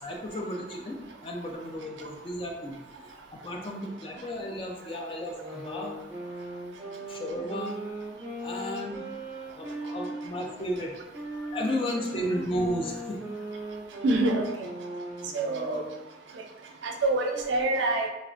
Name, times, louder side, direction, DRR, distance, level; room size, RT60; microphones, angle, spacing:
voice 1, 0.0-6.0 7.1-7.8 8.4-9.0 9.4-11.0 11.5-13.2, equal, 30° left, 1 dB, 0.3 m, -34 dB
sound 1, 5.2-10.6 11.1-16.0, right 1 dB, 10° right, 0.7 m, -39 dB
voice 2, 14.0-14.7 15.3-15.8 16.8-18.1, right 2 dB, 70° right, 3 dB, 0.4 m, -26 dB
3.1 x 2.0 x 2.4 m, 1.0 s
head